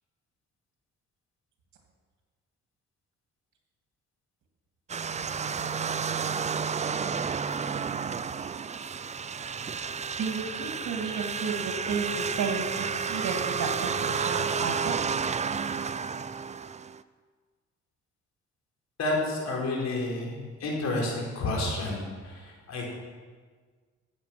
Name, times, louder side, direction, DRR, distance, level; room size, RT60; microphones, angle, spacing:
sound 1, 4.9-17.0, right 6 dB, 25° right, 0.4 m, -31 dB
voice 1, 10.2-13.7 14.0-15.2, right 5 dB, 75° right, 2 dB, 2.6 m, -32 dB
voice 2, 19.0-22.9, left 2 dB, 60° left, -2 dB, 4.1 m, -30 dB
13.5 x 8.6 x 6.1 m, 1.5 s
cardioid pair, 90°, 30 cm